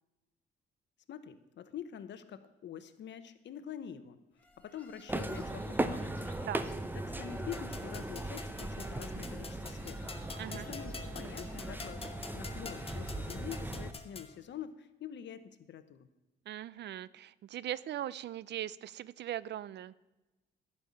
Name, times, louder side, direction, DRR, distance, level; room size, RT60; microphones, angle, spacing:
voice 1, 1.1-4.2 4.6-6.2 7.0-10.1 10.5-12.1 12.3-16.1, left 9 dB, 65° left, 11 dB, 1.0 m, -46 dB
sound 1, 4.4-13.6, left 1 dB, 10° left, 2.3 m, -58 dB
sound 2, 5.1-13.9, right 1 dB, 10° right, 0.8 m, -38 dB
sound 3, 7.5-14.3, left 4 dB, 30° left, 1.2 m, -47 dB
voice 2, 10.4-10.7 16.5-19.9, right 12 dB, 60° right, 20 dB, 0.5 m, -40 dB
11.5 x 5.6 x 8.6 m, 1.0 s
cardioid pair, 90°, 20 cm